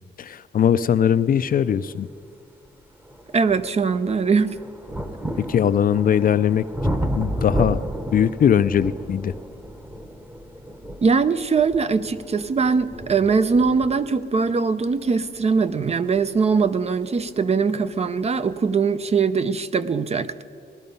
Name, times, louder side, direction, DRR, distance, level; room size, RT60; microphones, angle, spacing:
voice 1, 0.2-2.1 5.4-6.6 7.1-7.8 8.1-9.3, left 8 dB, 50° left, 14 dB, 0.4 m, -20 dB
sound 1, 2.0-2.1 2.7-17.3 18.2-18.3, equal, 10° right, 1.0 m, -32 dB
voice 2, 3.3-4.6 11.0-20.4, right 5 dB, 35° right, 12 dB, 0.6 m, -21 dB
19.0 x 12.5 x 5.4 m, 2.3 s
wide cardioid pair, 135°, 18 cm